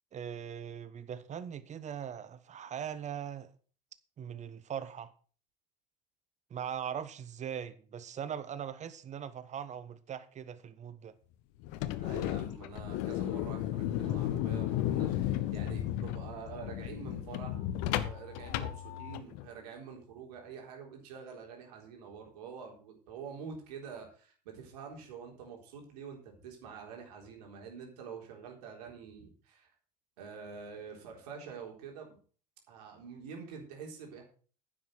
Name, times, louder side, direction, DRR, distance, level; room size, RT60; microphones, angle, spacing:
voice 1, 0.1-3.5 4.2-5.1 6.5-11.1, right 8 dB, 35° right, 1.3 m, -40 dB
sound 1, 11.6-19.4, left 12 dB, 60° left, 1.0 m, -34 dB
voice 2, 12.0-17.7 18.0-29.7 30.2-32.2 32.7-34.2, right 6 dB, 70° right, 4.0 m, -46 dB
10.0 x 7.7 x 6.4 m
hypercardioid pair, 75°, 21 cm